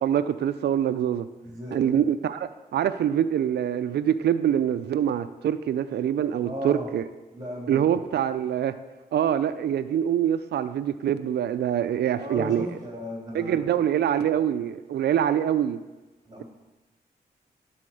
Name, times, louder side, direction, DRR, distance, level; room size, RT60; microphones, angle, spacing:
voice 1, 0.0-1.3 1.7-7.0 7.7-8.7 9.1-12.7 13.3-15.8, right 9 dB, 85° right, 11 dB, 0.5 m, -25 dB
voice 2, 1.4-2.0 6.4-6.9 7.3-7.9 12.2-13.7 14.2-14.3 16.3-16.4, equal, 20° right, -2 dB, 3.6 m, -36 dB
11.5 x 4.3 x 7.6 m, 1.1 s
cardioid pair, 55°, 17 cm